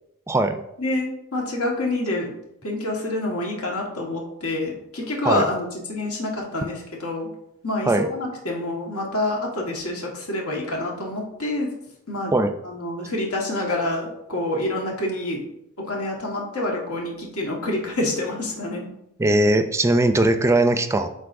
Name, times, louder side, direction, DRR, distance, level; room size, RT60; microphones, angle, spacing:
voice 1, 0.3-0.6 5.2-5.4 7.9-8.1 12.3-12.5 19.2-21.1, right 1 dB, 15° right, 9 dB, 0.4 m, -19 dB
voice 2, 0.8-2.3 2.6-7.3 7.6-11.7 12.1-12.3 12.6-15.4 15.9-18.9, left 1 dB, 85° left, -1 dB, 1.5 m, -27 dB
11.5 x 4.1 x 2.6 m, 0.81 s
head